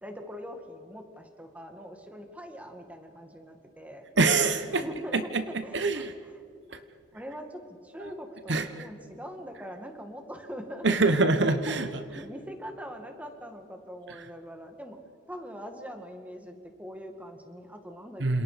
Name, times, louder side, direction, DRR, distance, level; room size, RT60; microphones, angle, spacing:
voice 1, 0.0-4.1 4.7-5.3 5.6-6.1 6.7-6.8 7.1-11.3 11.7-11.8 12.1-15.0 15.3-18.4, equal, 5° right, 4 dB, 2.1 m, -42 dB
voice 2, 4.2-4.8 5.1-6.1 6.7-6.8 8.0-8.1 8.5-8.9 10.8-12.2 14.1-14.3 18.2-18.4, right 3 dB, 60° right, 9 dB, 1.1 m, -26 dB
28.5 x 27.5 x 5.1 m, 2.3 s
head